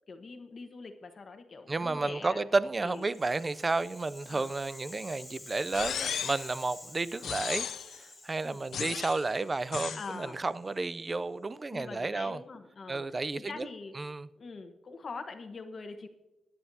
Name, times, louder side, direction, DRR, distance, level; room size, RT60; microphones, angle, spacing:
voice 1, 0.1-2.4 2.8-3.0 4.3-4.5 8.4-8.6 9.9-10.4 11.7-13.9 14.4-16.1, left 4 dB, 40° left, 1.2 m, -43 dB
voice 2, 1.7-7.7 8.0-12.4 12.9-13.7 13.9-14.3, right 3 dB, 25° right, 0.4 m, -32 dB
Rattle (instrument), 2.8-11.0, left 2 dB, 15° left, 1.8 m, -50 dB
sound 1, 5.7-6.5 7.2-8.0 8.7-9.3 9.7-10.1, left 8 dB, 90° left, 0.4 m, -35 dB
22.0 x 10.0 x 2.7 m
wide cardioid pair, 175°, 0 cm